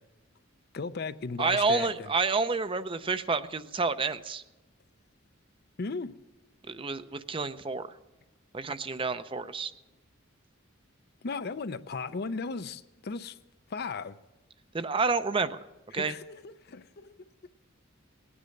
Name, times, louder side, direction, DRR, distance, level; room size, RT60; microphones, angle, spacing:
voice 1, 0.7-2.1 5.8-6.2 11.2-13.4 13.7-14.2 15.9-17.1, left 4 dB, 50° left, 0.5 m, -36 dB
voice 2, 1.4-4.4 6.7-7.9 8.5-9.7 14.7-15.6 15.9-16.1, right 4 dB, 25° right, 0.5 m, -29 dB
19.5 x 9.6 x 6.5 m
head